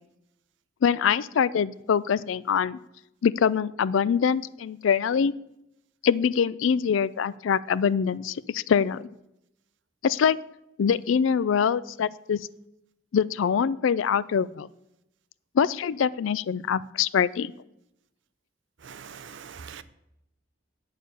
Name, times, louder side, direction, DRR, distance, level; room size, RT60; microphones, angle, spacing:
voice 1, 0.8-2.8 3.2-5.3 6.0-9.1 10.0-10.4 10.8-12.4 13.1-14.7 15.5-17.5, left 7 dB, 75° left, 0.4 m, -24 dB
voice 2, 18.8-19.8, right 7 dB, 65° right, 0.5 m, -42 dB
8.6 x 6.6 x 6.7 m
head